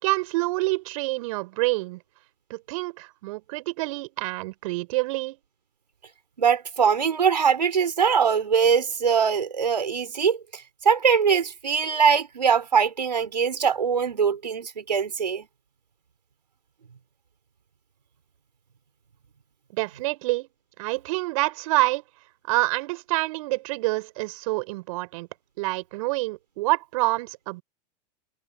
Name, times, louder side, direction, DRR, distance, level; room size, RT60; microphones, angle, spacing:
voice 1, 0.0-2.0 2.5-5.4 19.7-20.5 20.8-22.0 22.5-25.3 25.6-27.6, right 22 dB, 55° right, 5.1 m, -27 dB
voice 2, 6.4-10.4 10.8-15.5, right 6 dB, 85° right, 4.5 m, -22 dB
hypercardioid pair, 95°, 21 cm